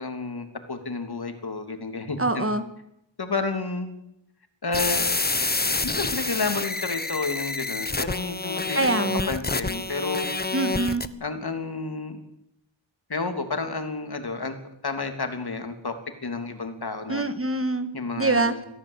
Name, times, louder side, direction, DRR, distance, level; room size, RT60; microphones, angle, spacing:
voice 1, 0.0-2.5 3.2-3.9 4.6-5.2 5.8-10.3 11.2-12.2 13.1-14.6 14.8-15.9 16.2-17.2 17.9-18.7, left 3 dB, 55° left, 7 dB, 3.2 m, -31 dB
voice 2, 2.2-2.6 8.8-9.3 10.5-11.0 17.1-17.9 18.2-18.5, right 2 dB, 30° right, 10 dB, 1.9 m, -24 dB
sound 1, 4.7-11.1, left 3 dB, 20° left, 1.2 m, -28 dB
23.0 x 15.5 x 8.3 m, 0.79 s
wide cardioid pair, 95°, 46 cm